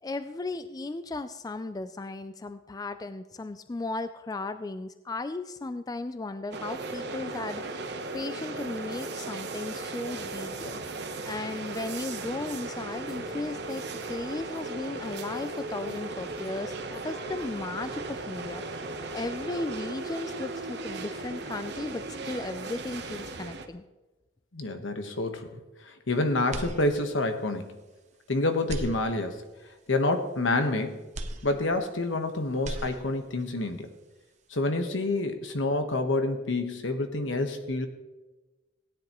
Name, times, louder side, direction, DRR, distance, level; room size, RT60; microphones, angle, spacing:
voice 1, 0.0-7.9 8.1-10.8 11.2-18.6 19.1-23.8, left 2 dB, 20° left, 11 dB, 0.3 m, -36 dB
sound 1, 6.5-23.7, right 3 dB, 60° right, 1.0 m, -37 dB
voice 2, 24.5-27.8 28.3-29.4 29.9-31.0 31.4-33.9 34.5-37.9, left 2 dB, 80° left, 6 dB, 1.2 m, -28 dB
sound 2, 26.5-27.4 27.8-27.9 28.6-29.6 31.1-32.2 32.5-33.4, right 1 dB, 40° right, 0.8 m, -38 dB
17.0 x 10.0 x 3.0 m, 1.1 s
head